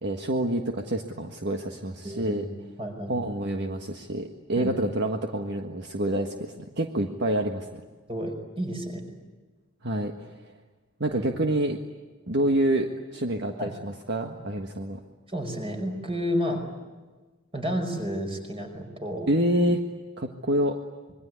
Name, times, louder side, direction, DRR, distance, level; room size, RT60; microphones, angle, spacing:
voice 1, 0.0-2.5 3.1-7.8 9.8-10.4 11.0-11.8 12.3-15.0 19.3-19.8 20.2-20.8, right 1 dB, 55° right, 4 dB, 1.6 m, -27 dB
voice 2, 2.0-2.4 2.8-3.1 4.6-4.8 8.1-9.0 11.1-11.3 13.6-13.7 15.3-16.6 17.5-19.3, equal, 25° right, 4 dB, 5.4 m, -31 dB
26.5 x 22.5 x 9.7 m, 1.3 s
head